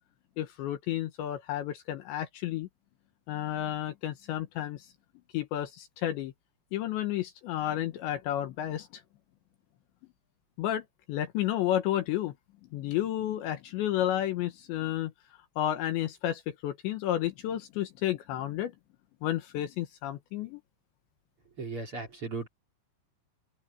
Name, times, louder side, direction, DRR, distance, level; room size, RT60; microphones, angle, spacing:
voice 1, 0.4-2.7 3.3-4.9 5.3-6.3 6.7-9.0 10.6-12.3 12.7-15.1 15.6-18.7 19.2-20.6, left 12 dB, 70° left, 3.2 m, -31 dB
voice 2, 21.6-22.5, right 3 dB, 30° right, 3.4 m, -36 dB
open air
omnidirectional pair, 5.8 m